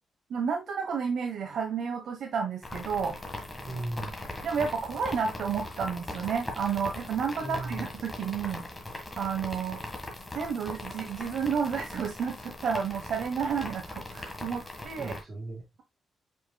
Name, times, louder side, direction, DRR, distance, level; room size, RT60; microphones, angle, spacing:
voice 1, 0.3-3.2 4.4-8.6 9.2-9.8 10.3-15.1, right 6 dB, 65° right, 1.2 m, -31 dB
sound 1, 2.6-15.2, left 1 dB, 15° left, 1.7 m, -40 dB
voice 2, 3.6-4.1 7.4-7.8 14.9-15.6, right 2 dB, 30° right, 4.5 m, -37 dB
7.2 x 5.8 x 2.3 m
wide cardioid pair, 155°, 0 cm